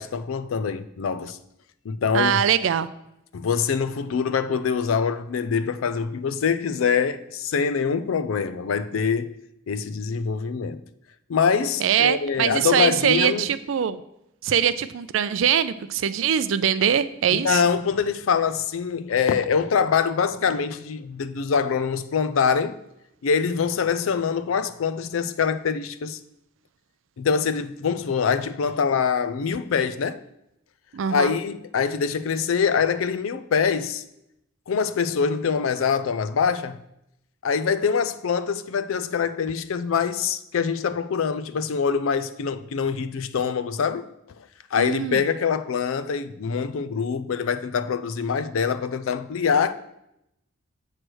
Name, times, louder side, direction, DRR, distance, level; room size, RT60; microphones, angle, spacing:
voice 1, 0.0-1.4 1.8-2.4 3.3-9.3 9.7-10.8 11.3-13.5 17.3-22.8 23.2-26.2 27.2-30.2 31.1-34.0 34.7-36.8 37.4-44.1 44.7-49.7, left 6 dB, 90° left, 0.4 m, -24 dB
voice 2, 2.1-2.9 11.8-14.0 14.4-17.6 30.9-31.3 44.8-45.2, right 8 dB, 70° right, 0.4 m, -22 dB
7.6 x 3.2 x 6.1 m
head